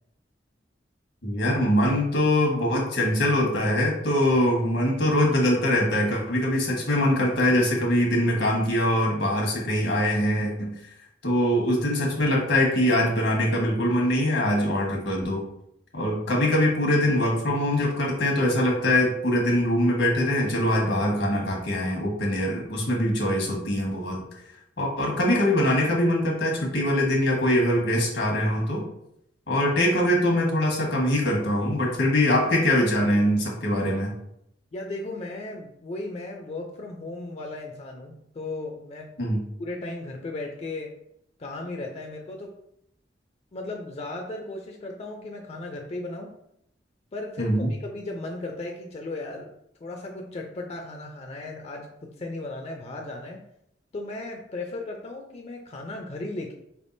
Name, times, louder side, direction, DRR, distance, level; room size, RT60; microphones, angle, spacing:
voice 1, 1.2-10.7 11.2-15.4 15.9-24.2 24.8-28.8 29.5-34.1 39.2-39.4 47.4-47.7, left 1 dB, 80° left, -1 dB, 1.2 m, -23 dB
voice 2, 34.7-39.1 39.6-40.9 41.4-42.5 43.5-46.3 47.1-47.5 47.8-49.5 49.8-53.4 53.9-56.5, left 2 dB, 35° left, 1 dB, 0.4 m, -36 dB
4.5 x 3.5 x 2.6 m, 0.76 s
head